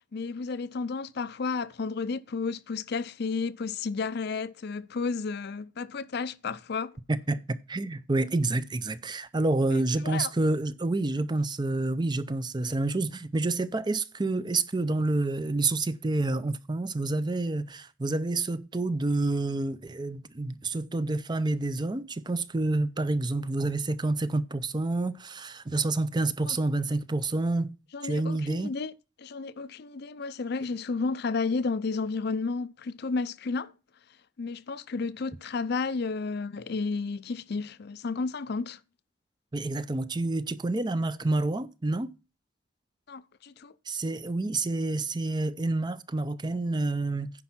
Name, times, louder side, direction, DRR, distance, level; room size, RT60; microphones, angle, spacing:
voice 1, 0.1-6.9 9.7-10.3 26.5-26.6 27.9-28.9 29.2-33.7 34.4-38.8 43.1-43.7, left 4 dB, 55° left, 0.5 m, -32 dB
voice 2, 7.1-27.8 28.0-28.7 39.5-42.1 43.9-47.3, right 2 dB, 25° right, 0.5 m, -28 dB
9.9 x 5.3 x 5.8 m
head